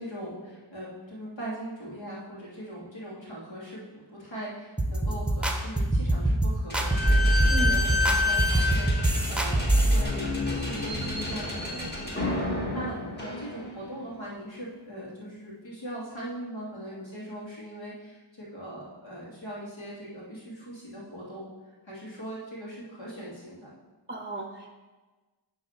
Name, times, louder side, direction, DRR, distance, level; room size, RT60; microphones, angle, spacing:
voice 1, 0.0-3.8 4.1-21.5 21.8-23.7, right 1 dB, 70° left, -7 dB, 2.9 m, -40 dB
sound 1, 4.8-10.0, right 1 dB, ahead, 0.9 m, -24 dB
Slam / Squeak, 6.7-14.0, left 2 dB, 20° left, 1.7 m, -30 dB
voice 2, 7.4-7.8 24.1-24.7, right 1 dB, 25° right, 5 dB, 0.6 m, -35 dB
8.8 x 4.0 x 5.9 m, 1.3 s
wide cardioid pair, 75°, 46 cm